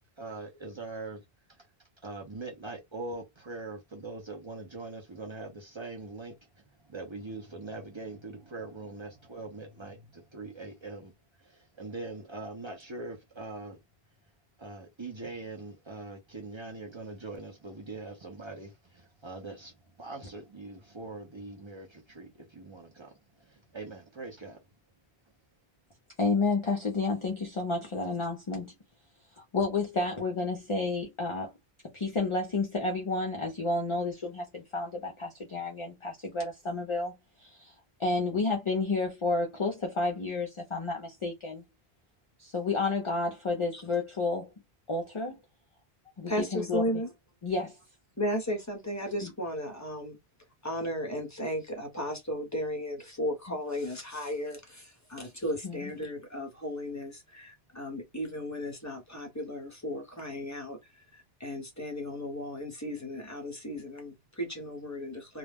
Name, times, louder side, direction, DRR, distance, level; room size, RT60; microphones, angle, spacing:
voice 1, 0.2-1.2 2.0-11.1 11.4-13.8 14.6-19.7 20.0-24.6, right 3 dB, 35° right, 0.5 m, -42 dB
voice 2, 26.2-28.7 29.5-31.5 31.9-37.1 37.4-41.6 42.4-44.5 44.9-45.4 46.2-46.8 47.4-47.7 49.2-49.3 55.6-55.9, left 3 dB, 40° left, 0.5 m, -31 dB
voice 3, 46.3-47.1 48.2-50.2 50.6-65.4, equal, 20° left, 0.8 m, -35 dB
2.3 x 2.0 x 3.3 m
omnidirectional pair, 1.0 m